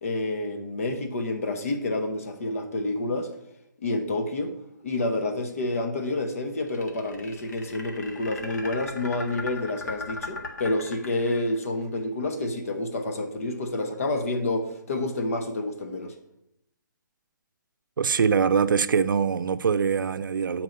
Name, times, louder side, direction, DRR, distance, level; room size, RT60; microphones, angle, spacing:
voice 1, 0.0-3.3 3.8-4.5 4.8-16.2, left 2 dB, 45° left, 1.0 m, -29 dB
sound 1, 6.6-11.6, left 3 dB, 60° left, 1.5 m, -37 dB
voice 2, 18.0-20.6, right 6 dB, 80° right, 0.5 m, -23 dB
7.8 x 4.5 x 5.3 m
hypercardioid pair, 175°, 11 cm